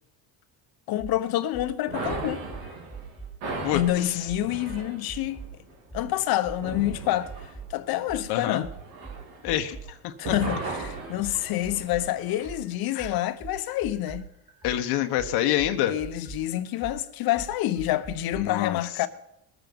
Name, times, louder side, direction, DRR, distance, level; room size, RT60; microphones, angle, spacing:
voice 1, 0.9-2.4 3.7-5.4 5.9-7.3 7.7-8.7 10.2-14.3 15.9-19.1, left 14 dB, 65° left, 1.0 m, -27 dB
sound 1, 1.0-1.2 1.5-1.7 2.1-3.4 3.7-3.9 4.3-5.5 5.9-6.1 6.4-7.7 8.1-12.1 12.4-18.4, right 6 dB, 10° right, 2.0 m, -41 dB
sound 2, 1.9-9.9 10.2-12.5, right 3 dB, 75° right, 4.1 m, -38 dB
voice 2, 3.6-4.3 8.3-8.7 9.4-10.3 12.9-13.1 14.6-16.0 18.4-18.8, left 12 dB, 85° left, 1.2 m, -27 dB
21.0 x 8.0 x 5.3 m
cardioid pair, 140°, 39 cm